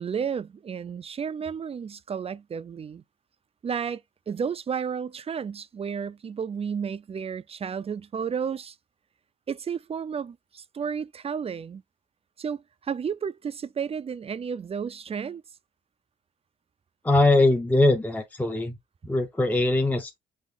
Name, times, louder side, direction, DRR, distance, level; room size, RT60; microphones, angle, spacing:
voice 1, 0.0-3.0 3.6-8.8 9.5-11.8 12.4-15.4, right 7 dB, 30° right, 0.4 m, -32 dB
voice 2, 17.0-18.8 19.0-20.2, left 2 dB, 10° left, 0.7 m, -21 dB
6.2 x 2.5 x 3.4 m
cardioid pair, 90°, 20 cm